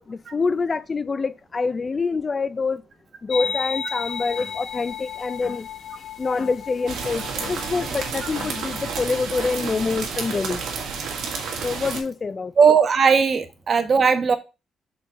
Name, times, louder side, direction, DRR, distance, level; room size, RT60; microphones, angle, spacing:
voice 1, 0.0-2.8 3.2-5.7 6.2-10.6 11.6-12.5, left 4 dB, 35° left, 0.5 m, -26 dB
sound 1, 3.3-9.8, left 7 dB, 60° left, 1.4 m, -34 dB
sound 2, 6.9-12.0, right 5 dB, 70° right, 2.2 m, -30 dB
voice 2, 12.6-14.4, right 6 dB, 45° right, 1.2 m, -17 dB
6.1 x 4.3 x 5.8 m
cardioid pair, 90°, 0 cm